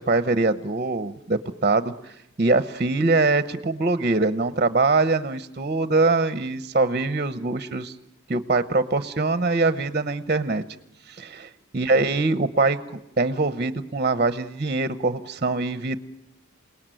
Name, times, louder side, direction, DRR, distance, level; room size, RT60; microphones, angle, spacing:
voice 1, 0.0-2.1 2.4-7.9 8.3-10.6 11.1-16.0, right 3 dB, 35° right, 12 dB, 0.8 m, -23 dB
28.5 x 18.5 x 9.1 m, 0.90 s
head